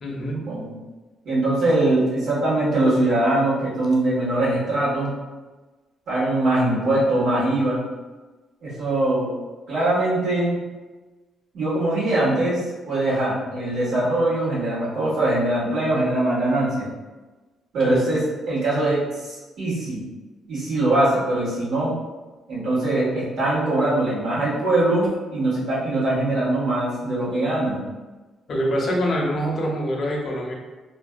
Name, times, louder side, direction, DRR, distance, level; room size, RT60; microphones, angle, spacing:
voice 1, 0.0-0.5 17.8-18.0 28.5-30.5, equal, 50° left, -2 dB, 0.6 m, -25 dB
voice 2, 1.2-5.1 6.1-7.8 8.6-9.3 9.7-10.6 11.5-16.9 17.7-20.0 20.5-21.9 22.5-27.8, right 1 dB, 70° right, -8 dB, 1.2 m, -22 dB
2.6 x 2.3 x 2.2 m, 1.2 s
cardioid pair, 90°, 0 cm